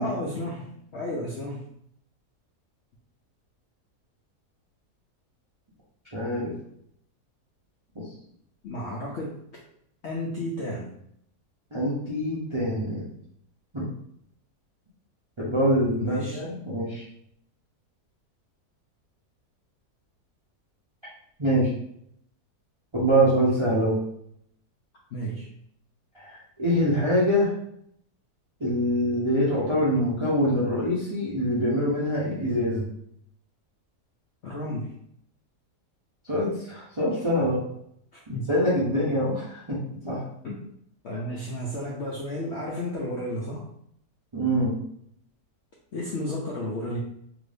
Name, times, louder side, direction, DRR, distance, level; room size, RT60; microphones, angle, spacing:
voice 1, 0.0-1.6 8.6-9.4 10.0-10.9 16.0-16.4 25.1-25.5 34.4-34.9 38.1-38.5 40.4-40.6 41.0-43.6 45.9-47.0, left 1 dB, 70° left, -3 dB, 0.6 m, -32 dB
voice 2, 6.1-6.5 7.9-8.1 11.7-13.0 13.7-13.9 15.4-17.0 21.4-21.7 22.9-24.0 26.1-27.5 28.6-32.9 36.3-37.6 38.3-39.8 40.0-40.3 44.3-44.7, equal, 35° right, -7 dB, 0.5 m, -24 dB
2.9 x 2.6 x 3.3 m, 0.72 s
omnidirectional pair, 1.7 m